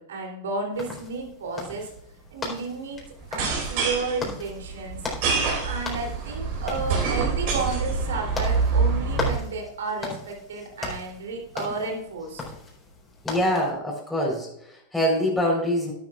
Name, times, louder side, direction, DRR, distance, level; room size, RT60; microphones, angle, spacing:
voice 1, 0.0-1.9 2.3-3.0 3.3-5.0 5.6-12.4, right 3 dB, 75° right, 1 dB, 3.2 m, -32 dB
sound 1, 0.7-13.7, left 3 dB, 20° left, 4.3 m, -38 dB
sound 2, 3.2-9.4, right 4 dB, 55° right, 4.7 m, -26 dB
voice 2, 13.2-15.9, equal, 5° left, -3 dB, 4.1 m, -25 dB
11.5 x 11.5 x 2.5 m, 0.76 s
hypercardioid pair, 100°, 0 cm